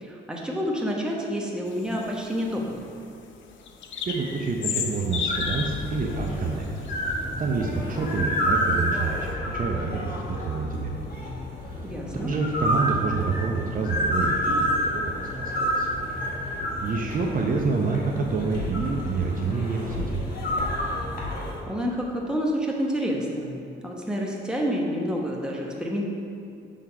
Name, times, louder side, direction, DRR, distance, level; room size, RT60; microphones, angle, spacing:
voice 1, 0.0-2.9 11.8-12.3 21.7-26.0, equal, 5° right, -2 dB, 1.1 m, -28 dB
sound 1, 1.7-7.7 8.1-9.3, left 6 dB, 75° left, 0.6 m, -35 dB
voice 2, 4.1-6.7 7.4-11.1 11.6-11.8 12.2-16.0 16.4-20.2, right 4 dB, 45° right, 0 dB, 0.7 m, -28 dB
sound 2, 5.3-21.6, equal, 50° left, 1.5 m, -29 dB
6.4 x 3.7 x 5.6 m, 2.5 s
cardioid pair, 90°, 20 cm